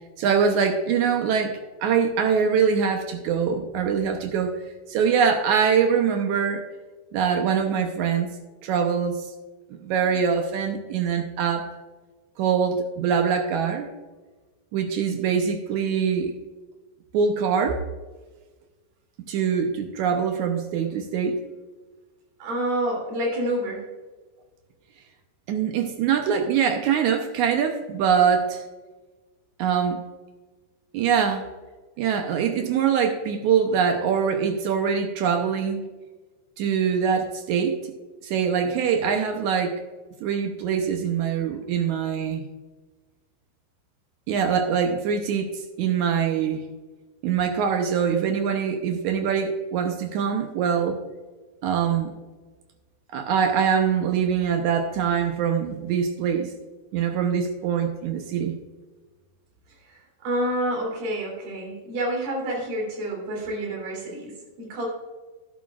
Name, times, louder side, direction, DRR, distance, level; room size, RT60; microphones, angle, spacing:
voice 1, 0.2-4.5 4.9-6.7 7.1-8.4 8.6-9.3 9.7-11.7 12.4-13.9 14.7-16.3 17.1-17.8 19.3-21.4 25.5-28.6 29.6-30.0 30.9-31.5 32.0-35.9 36.6-37.9 38.2-39.8 40.2-42.5 44.3-46.7 47.2-51.0 51.6-52.1 53.1-56.5 56.9-58.6, right 7 dB, 85° right, 5 dB, 1.6 m, -23 dB
voice 2, 22.4-23.9 59.9-64.9, right 1 dB, 70° right, -1 dB, 4.8 m, -28 dB
12.0 x 11.0 x 2.4 m, 1.3 s
omnidirectional pair, 4.4 m